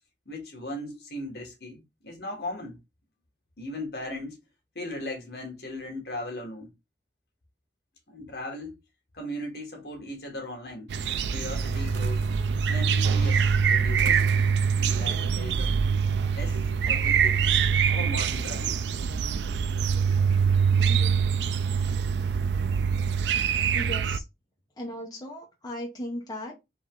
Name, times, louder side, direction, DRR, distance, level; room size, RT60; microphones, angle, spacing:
voice 1, 0.2-2.8 3.6-4.4 4.7-6.7 8.1-8.8 9.1-10.9 11.3-12.3 12.7-14.2 14.7-15.8 16.3-17.4 17.9-18.7, left 1 dB, 65° left, 1.7 m, -38 dB
sound 1, 10.9-24.2, right 6 dB, 75° right, 0.4 m, -24 dB
voice 2, 23.7-24.2 24.8-26.6, equal, 20° left, 1.2 m, -37 dB
4.2 x 3.0 x 3.7 m
head